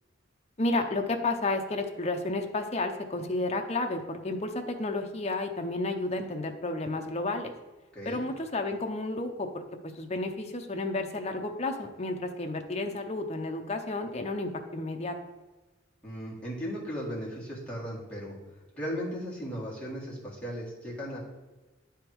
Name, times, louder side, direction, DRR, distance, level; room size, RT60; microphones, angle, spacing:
voice 1, 0.6-7.5 8.0-9.6 9.9-15.1, left 2 dB, 35° left, 5 dB, 0.6 m, -31 dB
voice 2, 8.0-8.3 16.0-18.4 18.8-21.2, equal, 5° left, -6 dB, 1.9 m, -36 dB
9.6 x 3.5 x 4.6 m, 1.2 s
head